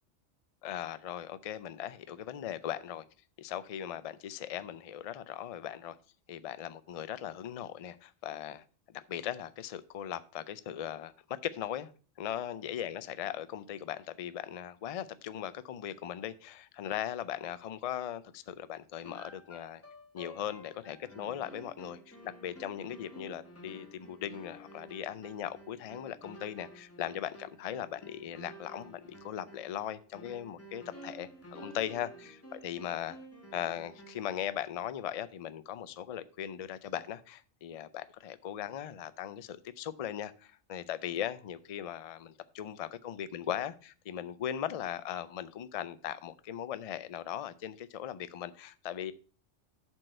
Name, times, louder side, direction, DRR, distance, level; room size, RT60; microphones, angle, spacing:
voice 1, 0.6-3.1 3.4-6.0 6.3-8.6 8.9-11.9 12.2-19.8 20.1-33.2 33.5-49.1, left 10 dB, 55° left, 0.4 m, -39 dB
sound 1, 19.0-34.4, right 1 dB, 10° left, 1.2 m, -52 dB
7.6 x 4.6 x 6.3 m
omnidirectional pair, 1.2 m